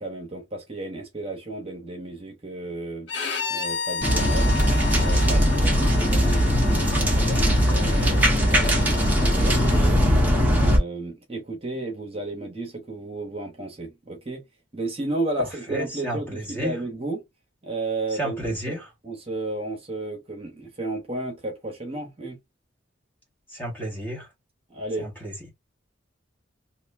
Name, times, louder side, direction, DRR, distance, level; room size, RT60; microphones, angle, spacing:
voice 1, 0.0-3.1 3.5-4.6 4.9-10.0 10.6-14.4 14.7-17.2 17.6-18.8 19.0-22.4 24.7-25.1, right 2 dB, 30° right, 1.1 m, -33 dB
Bowed string instrument, 3.1-9.8, left 5 dB, 65° left, 0.9 m, -33 dB
sound 1, 4.0-10.8, equal, 10° right, 1.0 m, -20 dB
voice 2, 15.4-16.8 18.1-18.9 23.5-24.3 25.0-25.5, right 1 dB, 10° left, 1.4 m, -32 dB
3.0 x 2.7 x 3.2 m
head